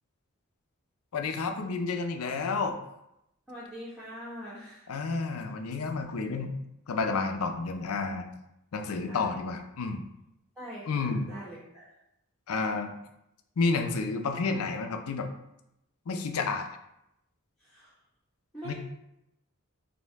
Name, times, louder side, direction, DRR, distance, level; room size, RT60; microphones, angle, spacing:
voice 1, 1.1-2.8 4.9-6.5 6.9-8.3 8.7-10.0 10.9-11.3 12.5-13.0 13.6-15.3 16.1-16.7 18.7-18.8, left 4 dB, 80° left, 5 dB, 0.5 m, -30 dB
voice 2, 3.5-4.9 8.8-9.3 10.5-11.9 17.6-17.9 18.5-18.7, equal, ahead, -14 dB, 1.3 m, -44 dB
4.4 x 2.7 x 3.5 m, 0.84 s
head